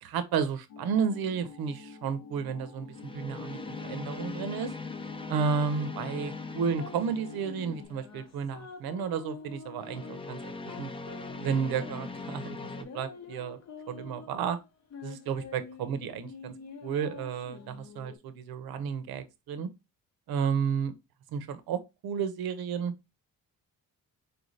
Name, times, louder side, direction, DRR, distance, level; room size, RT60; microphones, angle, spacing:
voice 1, 0.0-4.7 5.3-10.9 11.4-13.6 13.9-14.6 15.0-16.5 16.8-19.7 20.3-20.9 21.3-22.9, right 6 dB, 85° right, 0.7 m, -32 dB
sound 1, 0.7-7.9, left 5 dB, 80° left, 1.0 m, -49 dB
sound 2, 0.9-1.3 2.9-8.0 9.8-12.8, left 3 dB, 15° left, 0.4 m, -41 dB
sound 3, 3.4-18.2, left 5 dB, 50° left, 0.8 m, -47 dB
4.4 x 2.7 x 3.1 m
cardioid pair, 125°, 36 cm